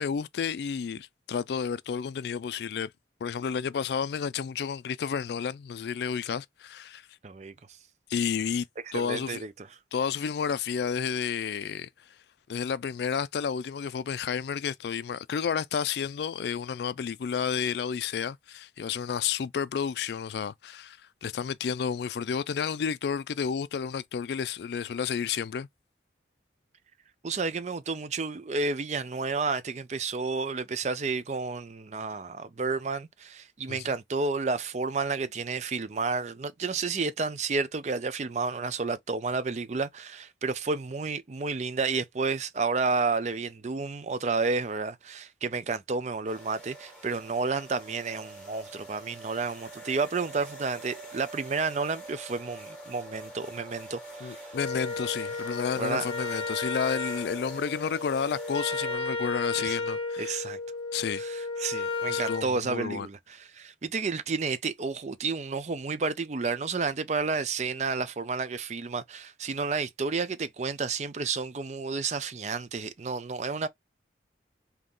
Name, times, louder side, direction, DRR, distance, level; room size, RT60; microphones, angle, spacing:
voice 1, 0.0-2.9 3.2-7.0 8.1-8.7 8.9-9.4 9.9-11.9 12.5-25.7 33.7-33.9 54.2-60.4 60.9-61.2 62.1-63.1, left 7 dB, 65° left, 0.3 m, -31 dB
voice 2, 7.2-7.5 8.9-9.7 27.2-54.4 55.8-56.1 59.6-59.8 60.2-60.6 61.2-73.7, right 4 dB, 40° right, 0.4 m, -31 dB
sound 1, 46.3-59.0, right 1 dB, 5° left, 1.8 m, -45 dB
Wind instrument woodwind instrument, 54.5-62.5, left 3 dB, 30° left, 0.8 m, -33 dB
3.7 x 2.8 x 3.8 m
head